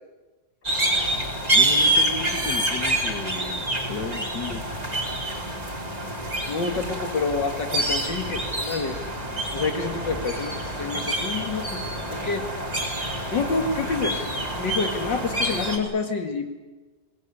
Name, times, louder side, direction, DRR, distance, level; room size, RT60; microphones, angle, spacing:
sound 1, 0.6-15.8, right 1 dB, 20° right, 4.2 m, -27 dB
voice 1, 1.5-4.6, left 3 dB, 75° left, 6 dB, 2.6 m, -34 dB
voice 2, 6.5-9.0 9.5-12.5 13.3-14.2 14.6-16.5, left 4 dB, 90° left, 6 dB, 2.8 m, -28 dB
23.5 x 20.0 x 9.8 m, 1.2 s
omnidirectional pair, 1.9 m